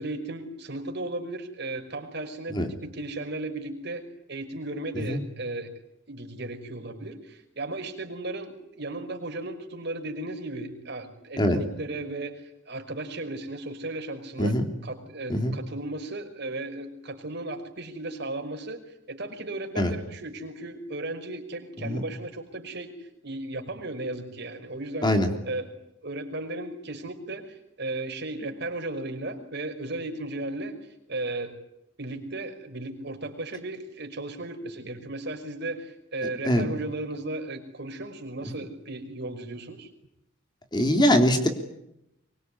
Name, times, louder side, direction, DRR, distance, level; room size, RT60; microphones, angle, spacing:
voice 1, 0.0-5.7 6.1-14.6 14.8-18.8 19.1-25.7 26.0-30.7 31.1-31.5 32.0-39.9, right 2 dB, 55° right, 5 dB, 5.5 m, -35 dB
voice 2, 40.7-41.5, equal, 20° left, 5 dB, 3.3 m, -22 dB
24.5 x 23.5 x 9.8 m, 0.81 s
head